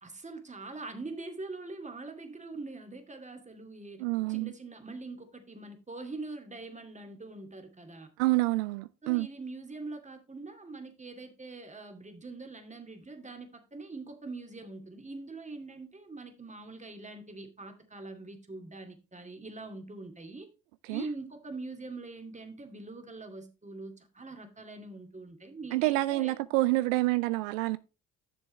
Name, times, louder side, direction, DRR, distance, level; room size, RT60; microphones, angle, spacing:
voice 1, 0.0-4.0 4.3-8.1 9.0-20.5 20.9-26.3, right 3 dB, 20° right, 2.3 m, -43 dB
voice 2, 4.0-4.5 8.2-9.3 20.9-21.0 25.7-27.8, right 20 dB, 85° right, 0.5 m, -27 dB
10.5 x 7.0 x 3.2 m
hypercardioid pair, 55°, 37 cm